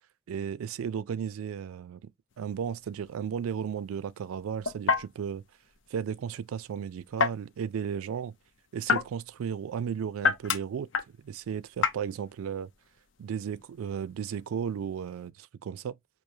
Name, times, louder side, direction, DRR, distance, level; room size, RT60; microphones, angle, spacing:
voice 1, 0.3-2.1 2.4-5.4 5.9-8.3 8.7-10.9 11.2-12.7 13.2-16.0, right 7 dB, 85° right, 0.3 m, -34 dB
sound 1, 2.3-15.3, left 5 dB, 60° left, 0.6 m, -34 dB
4.6 x 2.7 x 2.7 m
head